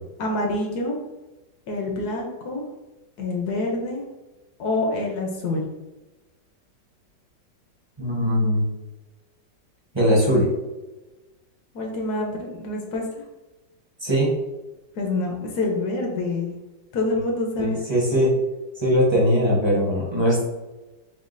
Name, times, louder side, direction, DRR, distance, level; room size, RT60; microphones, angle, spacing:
voice 1, 0.2-1.0 1.7-2.6 3.2-4.0 4.6-5.6 11.7-13.0 15.0-16.5 16.9-17.8, left 2 dB, 65° left, 1 dB, 1.2 m, -26 dB
voice 2, 8.0-8.6 9.9-10.5 14.0-14.3 17.6-18.3 18.8-20.4, equal, 20° right, -5 dB, 0.7 m, -20 dB
7.0 x 2.4 x 2.6 m, 1.1 s
omnidirectional pair, 2.0 m